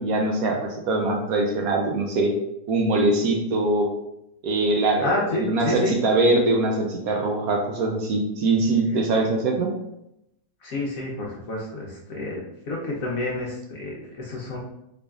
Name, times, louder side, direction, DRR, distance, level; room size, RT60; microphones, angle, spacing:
voice 1, 0.0-2.4 2.7-3.9 4.4-9.7, right 2 dB, 70° right, 1 dB, 0.9 m, -22 dB
voice 2, 5.0-5.9 10.6-14.6, left 2 dB, 65° left, -3 dB, 1.0 m, -29 dB
3.8 x 3.3 x 2.3 m, 0.83 s
omnidirectional pair, 1.7 m